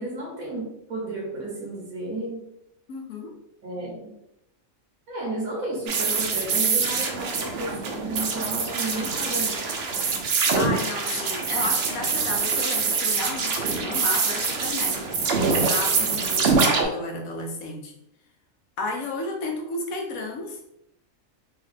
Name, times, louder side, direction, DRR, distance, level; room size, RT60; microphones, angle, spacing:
voice 1, 0.0-2.4 3.6-4.1 5.1-9.6 16.0-16.3, right 2 dB, 85° right, -4 dB, 1.5 m, -33 dB
voice 2, 2.9-3.3 10.1-17.9 18.8-20.6, left 2 dB, 80° left, 1 dB, 1.2 m, -33 dB
sound 1, 5.9-16.8, right 4 dB, 60° right, 0.7 m, -24 dB
3.6 x 2.4 x 3.2 m, 0.79 s
omnidirectional pair, 1.4 m